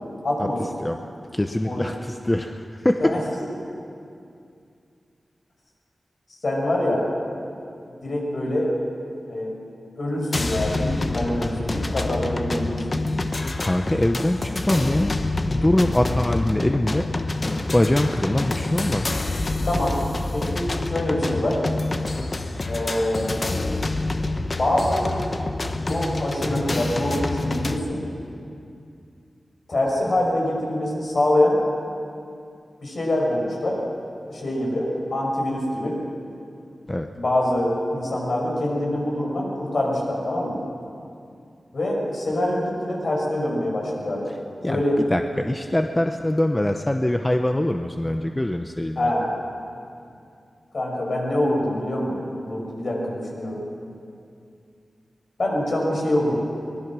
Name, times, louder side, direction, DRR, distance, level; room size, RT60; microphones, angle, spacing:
voice 1, 0.2-0.6 1.6-1.8 3.0-3.2 6.4-7.1 8.0-8.7 9.3-9.5 10.0-13.2 19.6-20.0 20.3-21.6 22.7-23.4 24.5-25.1 25.7-28.0 29.7-31.6 32.8-33.8 34.3-36.0 37.1-40.6 41.7-44.3 44.7-45.0 49.0-49.3 50.7-53.6 55.4-56.4, left 1 dB, 55° left, -2 dB, 6.2 m, -25 dB
voice 2, 1.3-3.1 13.6-15.2 15.5-17.1 17.7-19.1 36.9-37.1 44.6-49.1, left 1 dB, 15° left, 5 dB, 0.7 m, -23 dB
sound 1, 10.3-27.8, left 2 dB, 35° left, 1.1 m, -27 dB
23.5 x 20.5 x 6.2 m, 2.5 s
wide cardioid pair, 125°, 0 cm